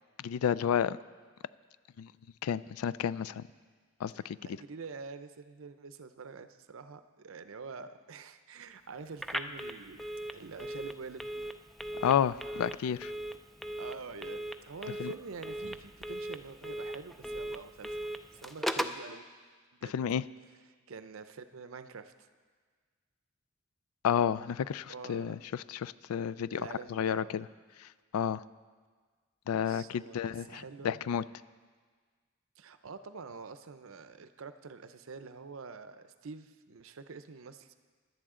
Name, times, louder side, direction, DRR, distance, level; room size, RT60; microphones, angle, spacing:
voice 1, 0.2-1.0 2.0-2.1 2.4-3.5 4.0-4.4 12.0-13.1 15.0-15.1 19.8-20.2 24.0-27.4 27.8-28.4 29.5-31.2, left 8 dB, 90° left, 18 dB, 0.3 m, -31 dB
voice 2, 4.2-10.0 10.3-11.3 13.8-18.0 18.3-19.3 19.8-19.9 20.9-22.3 24.9-25.4 26.5-27.4 29.6-31.0 32.6-37.7, right 4 dB, 65° right, 11 dB, 0.6 m, -46 dB
Telephone, 9.2-19.0, equal, ahead, 0.3 m, -39 dB
16.5 x 11.0 x 3.7 m, 1.5 s
head